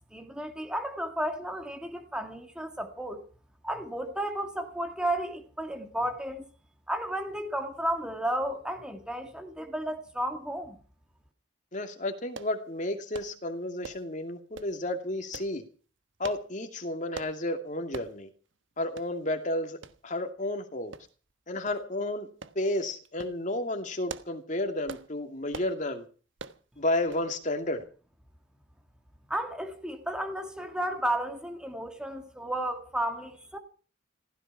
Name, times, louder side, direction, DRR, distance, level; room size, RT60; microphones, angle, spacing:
voice 1, 0.0-3.2 3.6-6.5 6.9-10.8 29.3-33.6, right 1 dB, 5° right, 2.1 m, -33 dB
voice 2, 11.7-15.6 16.2-18.3 18.8-19.8 20.0-20.9 21.5-22.3 22.5-26.1 26.8-27.8, left 1 dB, 40° left, 2.6 m, -32 dB
sound 1, 12.4-12.6 13.1-13.4 13.8-14.1 14.5-14.8 15.3-15.5 16.2-16.5 17.1-17.4 17.9-18.1 18.5-18.6 19.0-19.1 19.8-20.0 20.9-21.3 21.7-21.8 22.4-22.6 23.0-23.4 23.9-24.4 24.9-25.1 25.5-25.8 26.4-26.6 27.1-27.3 27.6-27.7, right 4 dB, 75° right, 1.3 m, -42 dB
16.0 x 15.0 x 6.0 m
head